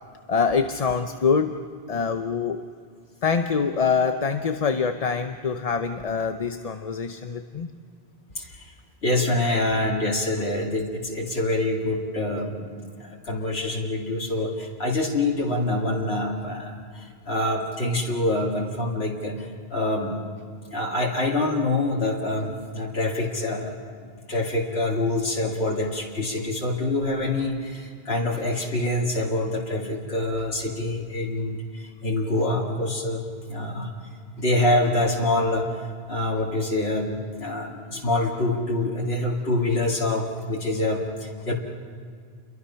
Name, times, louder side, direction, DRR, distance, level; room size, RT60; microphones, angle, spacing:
voice 1, 0.3-2.7 3.2-7.7, left 5 dB, 40° left, 7 dB, 0.8 m, -25 dB
voice 2, 8.4-8.7 9.0-20.3 20.7-23.8 24.3-33.9 34.4-35.7 36.1-41.5, left 2 dB, 90° left, -2 dB, 2.4 m, -26 dB
29.5 x 23.0 x 5.7 m, 2.2 s
omnidirectional pair, 1.0 m